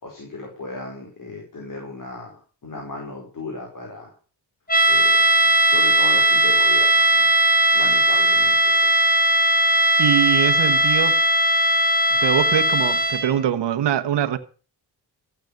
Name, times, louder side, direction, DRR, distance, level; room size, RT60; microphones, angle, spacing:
voice 1, 0.0-2.3 2.6-4.1 4.9-5.1 5.7-6.9 7.2-7.3 7.7-9.0, left 2 dB, 50° left, 4.8 m, -35 dB
sound 1, 4.7-13.4, right 1 dB, 20° left, 2.4 m, -18 dB
voice 2, 10.0-11.2 12.2-14.4, right 10 dB, 80° right, 1.4 m, -23 dB
15.0 x 8.8 x 6.6 m
cardioid pair, 90°, 42 cm